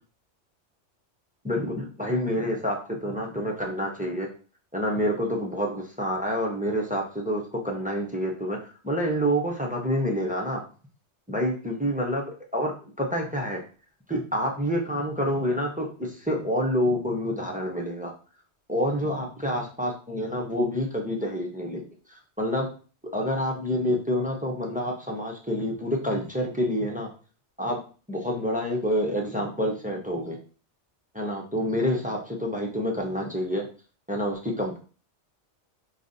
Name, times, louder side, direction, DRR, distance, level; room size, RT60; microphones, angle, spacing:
voice 1, 1.4-4.3 4.7-10.6 11.3-12.7 13.0-13.6 14.1-18.1 18.7-22.7 23.1-27.1 27.6-27.8 28.1-30.4 31.1-33.6 34.1-34.8, equal, 10° right, 0 dB, 0.5 m, -28 dB
5.2 x 3.1 x 2.6 m, 0.38 s
omnidirectional pair, 1.2 m